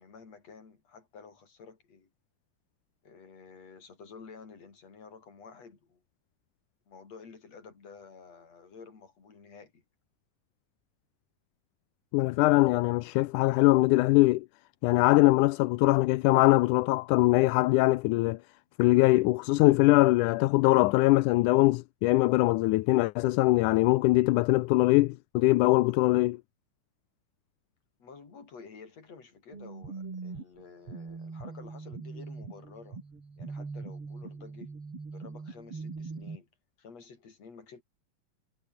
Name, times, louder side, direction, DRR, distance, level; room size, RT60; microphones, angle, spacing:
voice 1, 0.0-2.1 3.0-6.0 6.9-9.8 28.0-33.0 33.4-34.8 35.1-36.5 36.8-37.8, left 5 dB, 55° left, 5.4 m, -51 dB
voice 2, 12.1-14.5 14.8-18.4 18.8-26.4, left 19 dB, 80° left, 2.1 m, -22 dB
sound 1, 29.5-36.4, right 4 dB, 40° right, 5.3 m, -41 dB
omnidirectional pair, 3.7 m